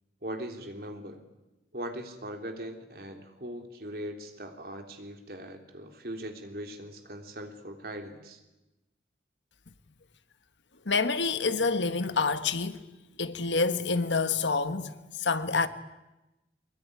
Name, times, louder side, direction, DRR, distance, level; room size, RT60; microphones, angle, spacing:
voice 1, 0.2-1.2 1.7-8.4, right 1 dB, 55° right, 3.3 m, -40 dB
voice 2, 10.8-12.8 13.2-15.7, left 4 dB, 85° left, 1.5 m, -27 dB
23.5 x 21.0 x 9.9 m
head